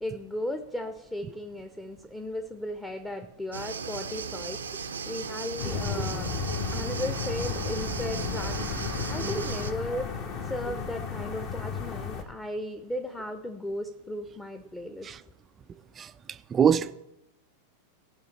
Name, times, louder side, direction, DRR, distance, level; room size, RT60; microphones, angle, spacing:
voice 1, 0.0-6.3 6.7-8.7 9.1-10.1 10.4-15.1, left 1 dB, 10° left, 0.9 m, -36 dB
sound 1, 3.5-9.7, right 5 dB, 75° right, 0.7 m, -36 dB
sound 2, 5.6-12.2, left 6 dB, 45° left, 1.5 m, -33 dB
voice 2, 16.5-16.9, right 8 dB, 25° right, 0.5 m, -24 dB
17.0 x 5.8 x 4.3 m
figure-of-eight pair, 90°, 0 cm